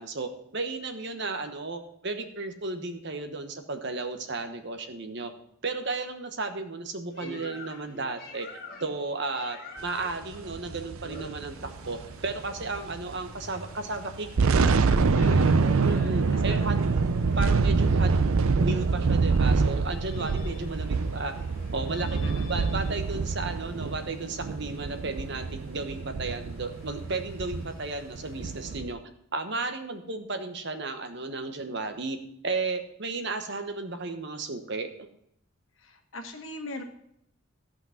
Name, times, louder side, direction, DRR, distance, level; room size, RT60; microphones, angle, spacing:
voice 1, 0.0-5.3 5.6-8.5 8.8-11.6 11.9-14.8 15.9-16.7 17.4-18.1 18.5-21.3 21.7-22.2 22.5-29.0 29.3-32.2 32.4-35.1, right 3 dB, 50° right, 7 dB, 1.2 m, -34 dB
sound 1, 7.1-22.9, left 2 dB, 40° left, 1.7 m, -47 dB
sound 2, 10.3-13.1 13.4-13.6 14.1-28.9, right 4 dB, 75° right, 0.5 m, -26 dB
sound 3, 11.5-28.8, equal, 15° right, 4.8 m, -51 dB
voice 2, 15.2-15.8 16.3-16.6 22.2-22.7 35.8-36.8, left 2 dB, 60° left, 5 dB, 1.5 m, -41 dB
14.0 x 5.9 x 5.8 m, 0.73 s
head